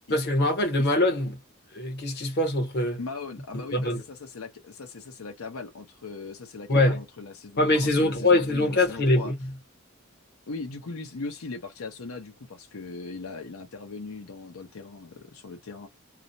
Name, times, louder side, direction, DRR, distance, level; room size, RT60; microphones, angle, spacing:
voice 1, 0.1-1.4 1.7-3.0 3.7-4.0 6.7-7.0 7.6-9.3, left 2 dB, 50° left, 0.9 m, -23 dB
voice 2, 3.0-9.3 10.5-15.9, left 3 dB, 80° left, 0.7 m, -39 dB
2.4 x 2.0 x 2.6 m
head